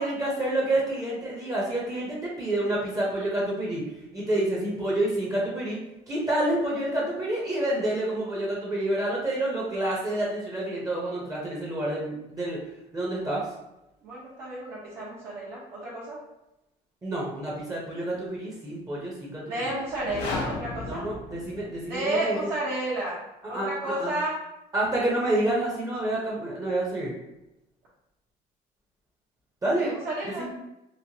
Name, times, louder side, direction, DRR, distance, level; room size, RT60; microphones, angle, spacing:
voice 1, 0.0-3.8 4.1-5.8 6.1-12.6 12.9-13.4 17.0-19.4 20.8-22.5 23.4-23.7 24.0-24.1 24.7-27.1 29.6-29.9 30.2-30.5, right 1 dB, 20° right, -4 dB, 0.7 m, -28 dB
voice 2, 14.0-16.2 19.4-21.0 21.9-23.2 23.5-24.4 29.8-30.5, right 1 dB, 70° right, -9 dB, 0.9 m, -31 dB
sound 1, 19.9-22.0, left 3 dB, 85° left, 0.5 m, -35 dB
3.0 x 2.1 x 2.7 m, 0.91 s
cardioid pair, 110°, 17 cm